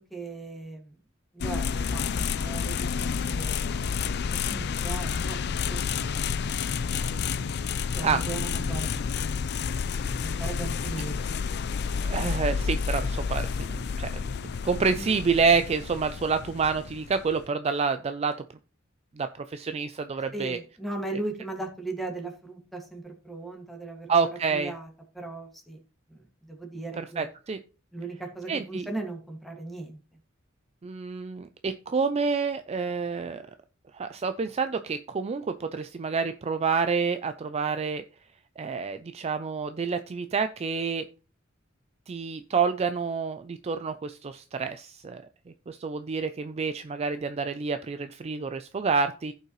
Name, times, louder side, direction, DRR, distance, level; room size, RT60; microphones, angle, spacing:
voice 1, 0.1-1.0 1.3-7.1 7.9-9.5 10.2-11.4 15.0-15.2 20.3-24.9 25.1-25.8 26.1-27.3 27.9-30.0, right 2 dB, ahead, 1 dB, 2.0 m, -38 dB
sound 1, 1.4-17.5, left 6 dB, 55° left, 0.4 m, -30 dB
voice 2, 12.0-18.3 19.2-20.6 24.1-24.7 27.2-27.6 28.5-28.8 30.8-33.4 33.9-38.0 38.6-41.0 42.1-45.2 45.7-49.3, right 5 dB, 30° right, 9 dB, 0.4 m, -28 dB
15.5 x 5.4 x 3.1 m, 0.35 s
head